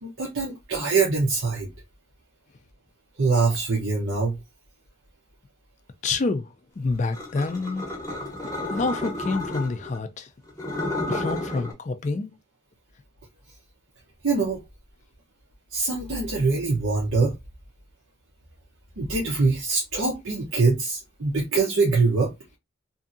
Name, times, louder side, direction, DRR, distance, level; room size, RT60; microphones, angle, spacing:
voice 1, 0.0-1.7 3.2-4.4 14.2-14.6 15.7-17.3 19.0-22.3, right 4 dB, 90° right, 0.8 m, -23 dB
voice 2, 6.0-6.5 6.8-7.9 8.7-10.3 11.1-12.3, left 3 dB, 35° left, 0.3 m, -27 dB
sound 1, 7.1-10.0 10.5-11.7, left 2 dB, 15° left, 0.7 m, -31 dB
2.7 x 2.6 x 2.5 m
head